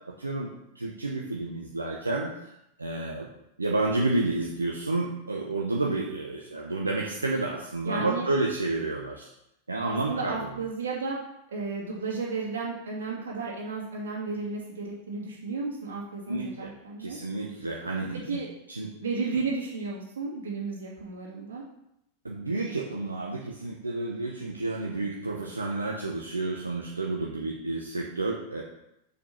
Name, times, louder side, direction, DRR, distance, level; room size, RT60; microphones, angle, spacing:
voice 1, 0.2-2.3 2.8-3.3 3.6-9.3 9.7-10.4 16.3-16.7 17.0-18.2 18.7-18.9 22.2-28.6, right 2 dB, 80° right, -1 dB, 0.9 m, -30 dB
voice 2, 7.8-8.3 9.8-11.2 11.5-17.2 18.3-18.5 19.0-21.6, right 4 dB, 65° right, -3 dB, 2.5 m, -33 dB
6.8 x 5.1 x 5.7 m, 0.83 s
figure-of-eight pair, 90°, 0 cm